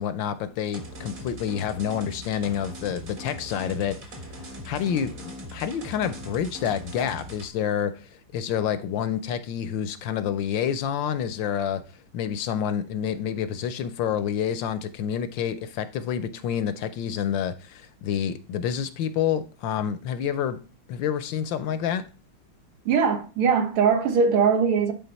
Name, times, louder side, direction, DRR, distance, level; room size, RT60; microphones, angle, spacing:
voice 1, 0.0-4.1 4.6-11.8 12.1-20.6 20.9-22.0, left 8 dB, 75° left, 1.2 m, -28 dB
sound 1, 0.7-7.5, equal, 45° right, 1.7 m, -40 dB
voice 2, 22.9-24.9, right 6 dB, 90° right, 2.0 m, -21 dB
9.8 x 3.9 x 4.0 m
omnidirectional pair, 2.3 m